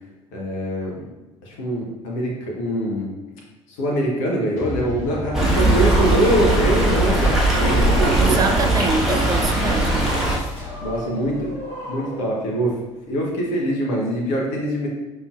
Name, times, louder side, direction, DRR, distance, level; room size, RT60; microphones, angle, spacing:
voice 1, 0.3-1.0 1.4-3.1 3.7-8.5 10.8-11.5 11.9-12.7 13.1-14.9, right 1 dB, 65° left, -2 dB, 0.9 m, -23 dB
sound 1, 4.6-12.4, left 2 dB, 40° left, 1.4 m, -35 dB
Stream, 5.3-10.4, right 1 dB, 5° right, 1.3 m, -19 dB
voice 2, 8.2-10.2, right 4 dB, 25° right, 6 dB, 0.4 m, -25 dB
5.2 x 3.1 x 2.4 m, 1.1 s
figure-of-eight pair, 55°, 17 cm